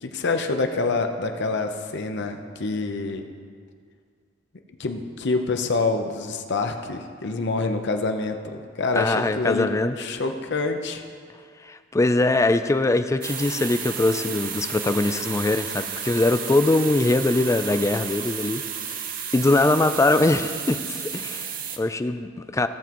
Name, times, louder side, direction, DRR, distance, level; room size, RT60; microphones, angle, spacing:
voice 1, 0.0-3.2 4.8-8.4 8.8-9.7 10.0-11.0, left 3 dB, 60° left, 5 dB, 0.8 m, -26 dB
voice 2, 8.9-10.0 11.6-18.6 18.9-19.0 19.3-22.7, left 2 dB, 15° left, 10 dB, 0.4 m, -22 dB
sound 1, 13.2-21.8, right 7 dB, 45° right, 0.7 m, -32 dB
16.5 x 7.3 x 3.0 m, 2.1 s
head